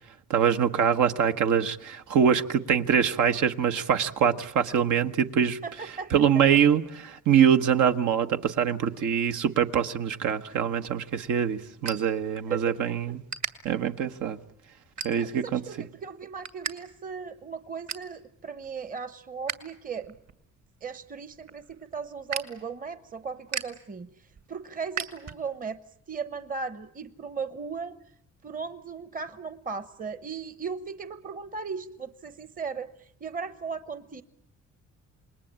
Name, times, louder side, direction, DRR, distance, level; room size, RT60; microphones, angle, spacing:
voice 1, 0.3-5.6 6.1-13.2 13.6-14.4 15.0-15.6, right 8 dB, 80° right, 1.3 m, -24 dB
voice 2, 5.6-6.1 12.5-13.2 15.2-20.1 20.8-24.1 24.5-25.8 26.1-27.9 28.4-34.2, right 5 dB, 30° right, 1.0 m, -37 dB
sound 1, 10.8-12.8 13.1-13.5 14.1-14.3 14.8-15.5 15.9-16.7 17.0-17.1 17.5-18.1 18.6-19.6 19.9-25.7, right 6 dB, 60° right, 2.5 m, -38 dB
27.5 x 20.5 x 8.8 m
cardioid pair, 90°, 30 cm